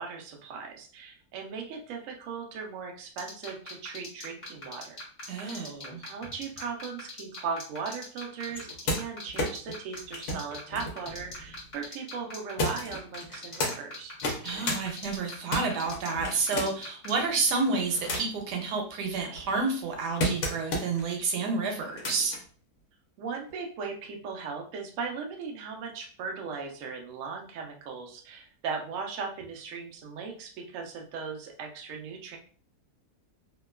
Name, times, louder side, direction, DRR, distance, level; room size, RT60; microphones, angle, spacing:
voice 1, 0.0-5.0 5.4-5.7 6.0-14.1 23.2-32.4, right 5 dB, 65° right, 2 dB, 0.9 m, -38 dB
sound 1, 3.2-17.4, left 2 dB, 30° left, 1.1 m, -41 dB
voice 2, 5.3-6.0 14.4-22.3, right 4 dB, 90° right, 3 dB, 1.2 m, -30 dB
sound 2, 8.5-11.8 12.6-13.7 14.1-14.8 15.2-16.9 17.5-18.4 19.0-21.0 21.8-22.4 23.5-23.6, left 1 dB, 60° left, 0.9 m, -33 dB
2.8 x 2.2 x 2.2 m, 0.43 s
omnidirectional pair, 1.7 m